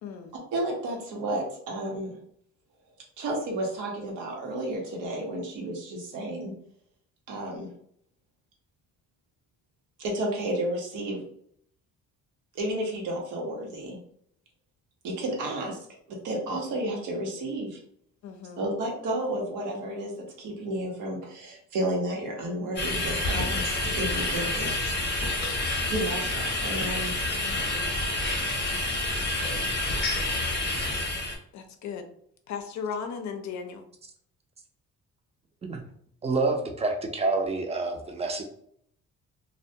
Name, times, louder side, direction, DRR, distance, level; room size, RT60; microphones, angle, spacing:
voice 1, 0.0-0.3 18.2-18.6 27.4-28.0 29.4-29.7 31.5-32.1 32.5-33.9, left 6 dB, 70° left, 6 dB, 0.5 m, -37 dB
voice 2, 0.5-2.2 3.2-6.5 7.3-7.7 10.0-11.2 12.5-14.0 15.0-15.8 16.1-17.8 18.6-25.1 25.9-27.1, right 1 dB, 90° right, 0 dB, 0.8 m, -32 dB
sound 1, 22.8-31.4, left 2 dB, 35° left, 0.7 m, -28 dB
voice 3, 36.2-38.4, right 3 dB, 20° right, 3 dB, 0.5 m, -27 dB
2.1 x 2.1 x 2.7 m, 0.66 s
cardioid pair, 90°, 30 cm